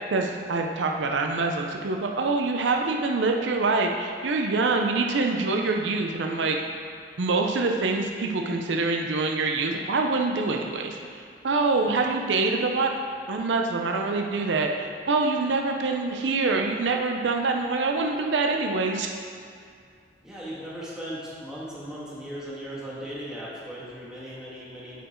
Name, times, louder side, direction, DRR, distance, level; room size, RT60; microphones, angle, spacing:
voice 1, 0.1-6.6 7.2-11.0 11.4-12.9 13.3-19.1, right 3 dB, 80° right, 2 dB, 0.5 m, -25 dB
voice 2, 20.2-25.0, equal, 5° right, -9 dB, 1.6 m, -38 dB
8.1 x 4.4 x 4.4 m, 2.2 s
head